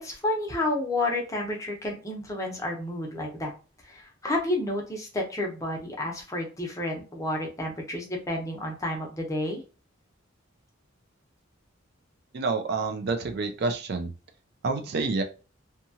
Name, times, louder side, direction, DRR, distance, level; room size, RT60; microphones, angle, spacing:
voice 1, 0.0-3.5 3.8-9.6, left 1 dB, 15° left, 0 dB, 0.7 m, -30 dB
voice 2, 12.3-14.1 14.6-15.2, right 3 dB, 55° right, 7 dB, 0.4 m, -28 dB
2.8 x 2.3 x 2.7 m, 0.34 s
head